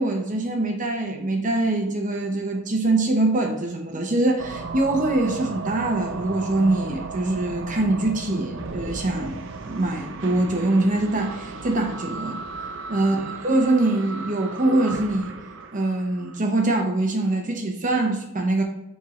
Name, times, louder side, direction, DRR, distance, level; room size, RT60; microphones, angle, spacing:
voice 1, 0.0-12.4 12.9-15.3 15.7-18.6, right 2 dB, 40° right, 2 dB, 0.8 m, -23 dB
sound 1, 4.4-16.4, right 4 dB, 65° right, 0.5 m, -35 dB
6.9 x 4.4 x 3.2 m, 0.86 s
head